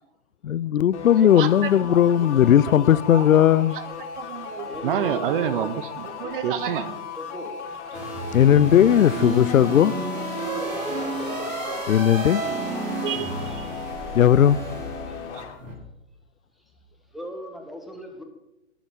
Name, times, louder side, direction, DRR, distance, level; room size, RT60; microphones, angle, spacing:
voice 1, 0.4-3.8 8.3-9.9 11.9-12.4 14.1-14.6, left 10 dB, 90° left, 19 dB, 0.6 m, -17 dB
sound 1, 0.9-15.6, left 7 dB, 65° left, 2.5 m, -37 dB
voice 2, 1.2-2.0 3.1-3.3 3.7-3.8 4.1-7.0 13.0-13.8 15.3-15.4, right 9 dB, 45° right, 14 dB, 0.8 m, -29 dB
voice 3, 1.9-3.6 4.6-5.7 7.2-7.5 7.9-8.6 10.4-12.1 13.5-13.6 15.0-15.2 15.5-15.7 17.1-18.2, left 1 dB, ahead, 4 dB, 1.3 m, -39 dB
sound 2, 7.9-15.7, right 2 dB, 80° right, 4.5 m, -31 dB
18.5 x 7.1 x 3.7 m, 0.90 s
hypercardioid pair, 135°, 39 cm